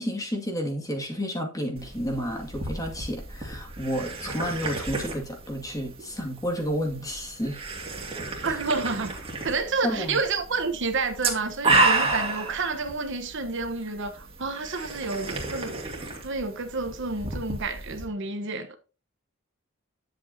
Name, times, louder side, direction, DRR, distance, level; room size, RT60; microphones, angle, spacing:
voice 1, 0.0-7.6 8.4-8.5 9.8-10.2, equal, 15° left, 2.2 m, -31 dB
sound 1, 1.8-18.1, right 3 dB, 25° right, 2.5 m, -31 dB
voice 2, 8.4-9.2 9.4-15.9 16.2-18.8, right 4 dB, 60° right, 1.1 m, -29 dB
10.5 x 7.8 x 2.8 m
head